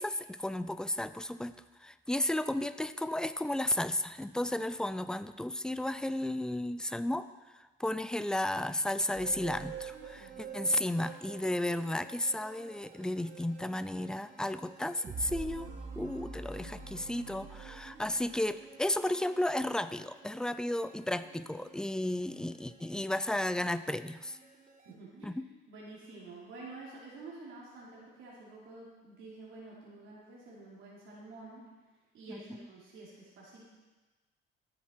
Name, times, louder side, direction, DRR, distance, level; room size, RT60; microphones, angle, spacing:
voice 1, 0.0-24.4 25.2-25.5 32.3-32.7, left 1 dB, 5° left, 13 dB, 0.3 m, -33 dB
sound 1, 9.1-24.9, right 6 dB, 40° right, 1.6 m, -48 dB
voice 2, 10.2-10.5 24.8-31.6 32.1-33.6, right 3 dB, 70° right, -6 dB, 2.8 m, -49 dB
13.5 x 7.4 x 4.4 m, 1.2 s
cardioid pair, 115°, 21 cm